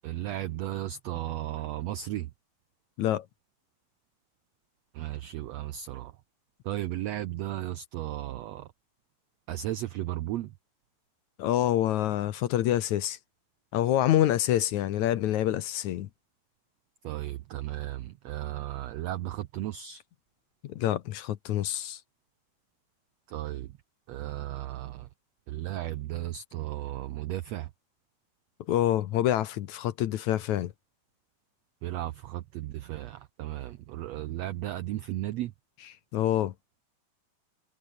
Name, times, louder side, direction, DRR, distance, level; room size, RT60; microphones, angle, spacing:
voice 1, 0.0-2.3 4.9-6.1 6.6-8.7 9.5-10.5 17.0-20.0 23.3-23.8 24.1-25.1 25.5-27.7 31.8-35.5, right 14 dB, 85° right, 1.4 m, -35 dB
voice 2, 11.4-13.2 13.7-16.1 20.6-22.0 28.7-30.7 36.1-36.5, left 12 dB, 65° left, 2.1 m, -26 dB
omnidirectional pair, 4.0 m